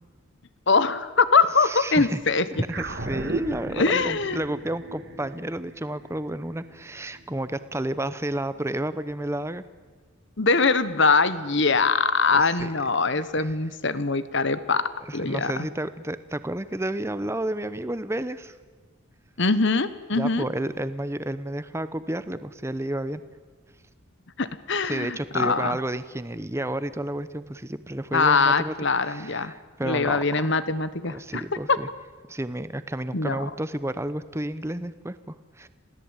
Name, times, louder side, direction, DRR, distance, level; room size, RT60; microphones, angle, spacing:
voice 1, 0.7-2.4 3.7-4.4 10.4-15.5 19.4-20.5 24.4-25.8 28.1-29.5 29.8-31.8 33.1-33.4, left 4 dB, 55° left, 14 dB, 1.2 m, -23 dB
voice 2, 1.6-2.2 2.5-9.6 12.3-12.9 13.2-13.6 15.0-18.6 20.1-23.2 24.8-28.7 29.0-30.2 31.1-31.9 32.3-35.7, right 1 dB, 10° right, 13 dB, 0.8 m, -31 dB
sound 1, 2.7-7.3, right 2 dB, 50° right, 2.2 m, -35 dB
27.5 x 17.0 x 9.0 m, 1.4 s
head